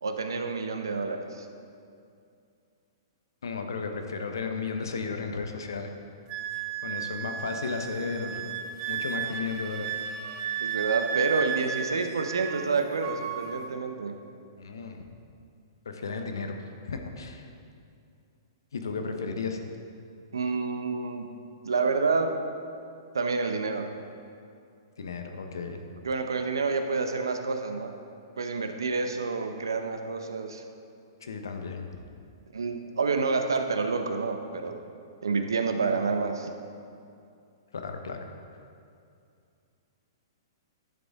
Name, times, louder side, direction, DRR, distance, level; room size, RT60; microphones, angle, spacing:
voice 1, 0.0-1.5 10.6-14.2 20.3-21.3 21.6-22.4 23.1-23.9 26.0-27.9 28.4-30.6 32.5-34.8 35.2-36.5, right 4 dB, 80° right, 6 dB, 0.8 m, -28 dB
voice 2, 3.4-5.9 6.8-8.4 8.9-9.9 14.6-15.0 15.8-16.6 16.8-17.5 18.7-19.6 25.0-25.8 31.2-31.9 37.7-38.3, left 4 dB, 80° left, 5 dB, 0.9 m, -34 dB
Wind instrument woodwind instrument, 6.3-12.7 13.0-13.6, right 8 dB, 35° right, 0.7 m, -34 dB
12.0 x 7.1 x 3.6 m, 2.5 s
hypercardioid pair, 120°, 2 cm